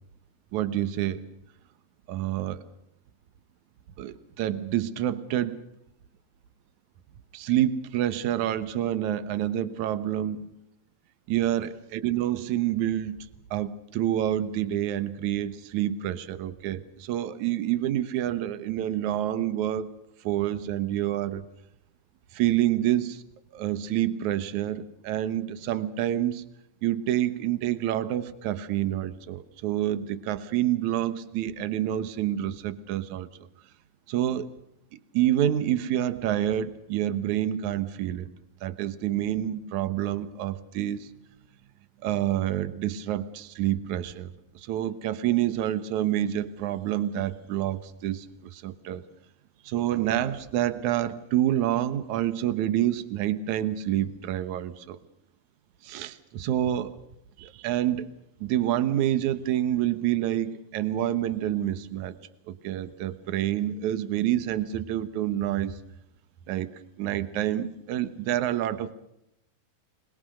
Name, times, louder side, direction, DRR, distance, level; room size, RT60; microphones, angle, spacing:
voice 1, 0.5-1.3 2.1-2.6 4.0-5.6 7.3-10.5 11.3-13.2 13.5-19.9 20.3-21.4 22.4-23.2 23.5-26.4 26.8-33.3 34.1-34.5 35.1-38.3 38.6-41.1 42.0-44.3 44.7-48.3 48.5-49.0 49.7-55.0 55.9-57.0 57.4-58.1 58.4-62.1 62.5-65.7 66.5-68.9, right 12 dB, 65° right, 13 dB, 2.0 m, -27 dB
26.0 x 21.5 x 6.5 m, 0.82 s
omnidirectional pair, 4.8 m